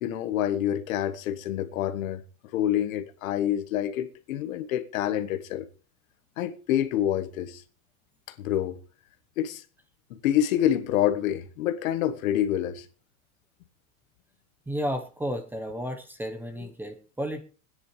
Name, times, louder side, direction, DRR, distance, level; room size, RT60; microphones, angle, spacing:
voice 1, 0.0-2.2 2.5-5.7 6.4-7.6 8.3-8.8 9.4-9.6 10.1-12.9, left 11 dB, 75° left, 1.5 m, -27 dB
voice 2, 14.7-17.4, equal, 5° right, 0.9 m, -32 dB
22.5 x 10.0 x 3.2 m
supercardioid pair, 155°, 41 cm